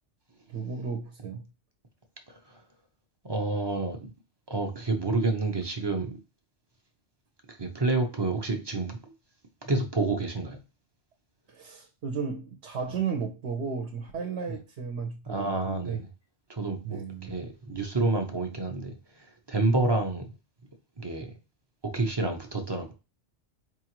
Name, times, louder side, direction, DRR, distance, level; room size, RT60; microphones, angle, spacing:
voice 1, 0.5-1.4 11.5-16.0 16.8-17.3, right 6 dB, 65° right, 0.9 m, -34 dB
voice 2, 3.3-4.1 4.5-6.2 7.6-9.0 9.7-10.6 15.3-16.1 16.5-19.0 19.5-20.2 21.0-21.3 21.9-22.9, right 3 dB, 30° right, 0.5 m, -28 dB
4.6 x 2.4 x 2.9 m
omnidirectional pair, 1.3 m